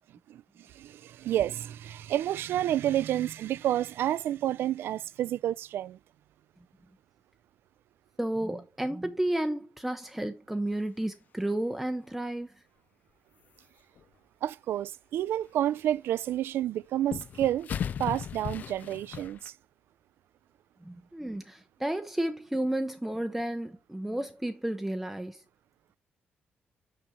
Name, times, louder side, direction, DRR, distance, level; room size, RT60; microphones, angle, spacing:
voice 1, 0.7-6.0 14.4-17.7 18.0-19.5, right 12 dB, 80° right, 0.4 m, -30 dB
voice 2, 8.2-12.5 20.8-25.4, right 1 dB, 5° right, 0.6 m, -32 dB
sound 1, 10.7-10.8 14.0-14.1 16.1-16.2 17.1-19.5, left 8 dB, 45° left, 0.3 m, -36 dB
6.3 x 5.9 x 4.2 m
cardioid pair, 165°, 4 cm